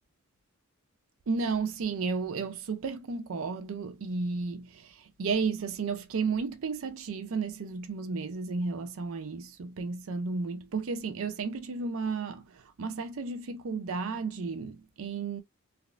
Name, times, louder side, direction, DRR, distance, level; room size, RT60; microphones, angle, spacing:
voice 1, 1.3-15.4, right 4 dB, 75° right, 0.4 m, -33 dB
3.4 x 2.4 x 2.2 m
head